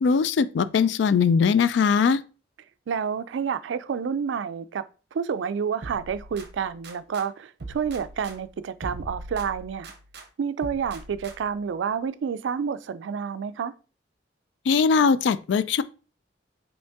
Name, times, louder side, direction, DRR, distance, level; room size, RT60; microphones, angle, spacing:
voice 1, 0.0-2.2 14.7-15.8, left 5 dB, 65° left, 0.3 m, -20 dB
voice 2, 2.9-4.8 5.1-9.9 10.4-13.7, right 6 dB, 75° right, 0.3 m, -29 dB
sound 1, 5.8-7.3 7.6-10.3 10.6-11.6, right 2 dB, 60° right, 0.7 m, -41 dB
5.2 x 2.8 x 3.5 m
head